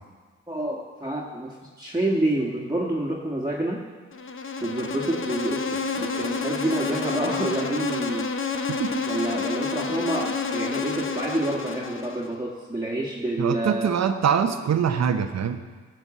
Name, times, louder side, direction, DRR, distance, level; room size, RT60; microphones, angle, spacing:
voice 1, 0.5-3.8 4.6-8.3 9.1-13.9 14.9-15.0, right 1 dB, 15° right, -4 dB, 1.7 m, -28 dB
Insect, 4.1-12.3, left 4 dB, 40° left, 1.0 m, -29 dB
voice 2, 13.4-15.6, right 7 dB, 60° right, 8 dB, 1.0 m, -23 dB
13.5 x 4.5 x 8.3 m, 1.5 s
supercardioid pair, 55°, 30 cm